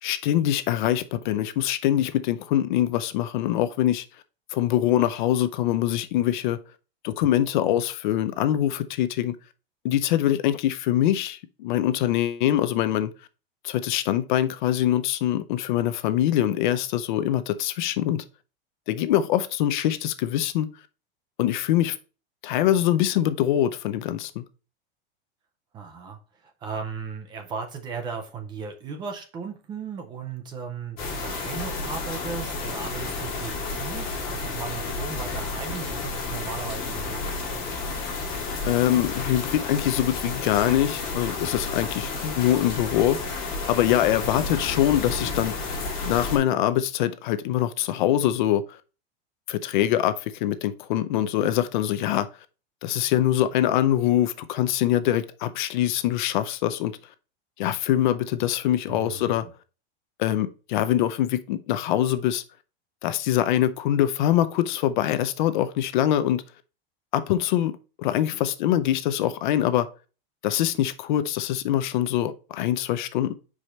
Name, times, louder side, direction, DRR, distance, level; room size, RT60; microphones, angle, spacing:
voice 1, 0.0-4.0 4.5-6.6 7.0-9.4 9.8-13.1 13.6-18.2 18.9-20.7 21.4-22.0 22.4-24.4 38.7-43.2 43.7-45.5 46.1-48.8 49.5-52.3 52.8-57.0 57.6-59.5 60.2-62.4 63.0-66.4 67.1-67.7 68.0-69.9 70.4-73.3, left 12 dB, 55° left, 0.6 m, -24 dB
voice 2, 25.7-37.8 58.9-59.5, right 5 dB, 15° right, 0.5 m, -36 dB
sound 1, 31.0-46.4, left 3 dB, 30° left, 2.2 m, -31 dB
5.3 x 4.9 x 4.3 m
supercardioid pair, 180°, 29 cm